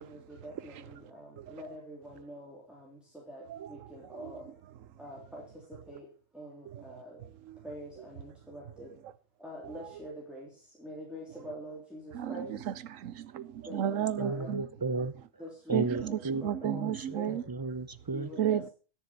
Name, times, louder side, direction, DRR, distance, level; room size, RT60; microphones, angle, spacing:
voice 1, 0.0-4.7 5.0-7.2 7.6-8.9 9.4-12.5 13.6-14.5 15.4-17.4 18.1-18.7, equal, ahead, 3.3 m, -45 dB
voice 2, 0.7-1.1 1.4-1.6 3.5-3.7 4.0-4.5 6.7-7.6 9.0-9.1 9.6-9.9 12.1-14.7 15.7-17.4 18.3-18.7, right 10 dB, 90° right, 1.1 m, -34 dB
voice 3, 14.2-15.1 15.7-18.3, right 3 dB, 35° right, 0.3 m, -34 dB
13.0 x 7.0 x 5.9 m
omnidirectional pair, 1.3 m